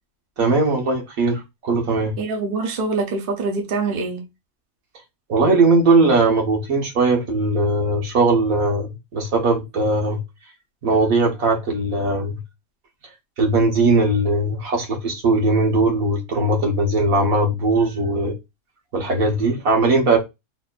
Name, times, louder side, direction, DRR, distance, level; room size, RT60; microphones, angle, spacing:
voice 1, 0.4-2.1 5.3-10.2 10.8-12.4 13.4-18.3 18.9-20.2, right 2 dB, 65° right, 1.8 m, -19 dB
voice 2, 2.2-4.2, right 3 dB, 45° right, 0.8 m, -24 dB
4.1 x 3.6 x 2.4 m
omnidirectional pair, 1.6 m